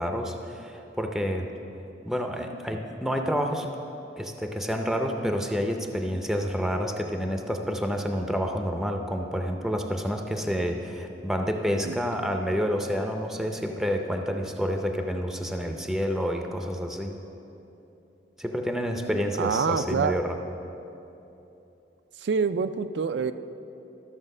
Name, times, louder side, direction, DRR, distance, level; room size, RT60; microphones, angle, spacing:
voice 1, 0.0-1.5 2.0-3.7 4.2-17.1 18.4-20.4, equal, ahead, 3 dB, 0.5 m, -29 dB
voice 2, 19.4-20.1 22.2-23.3, right 5 dB, 70° right, 11 dB, 0.4 m, -26 dB
13.0 x 6.8 x 5.4 m, 2.9 s
head